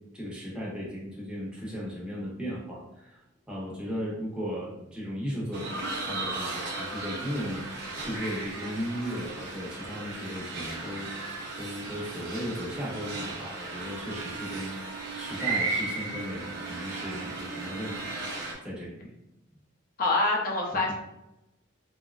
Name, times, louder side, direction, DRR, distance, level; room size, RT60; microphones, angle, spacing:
voice 1, 0.1-3.2 3.5-7.6 8.0-11.1 11.6-18.1 18.6-19.1 20.7-20.9, equal, 5° right, -6 dB, 0.7 m, -36 dB
sound 1, 5.5-18.5, right 3 dB, 55° right, 0.6 m, -35 dB
voice 2, 20.0-20.9, left 2 dB, 45° left, -2 dB, 0.5 m, -25 dB
2.8 x 2.2 x 2.3 m, 0.90 s
head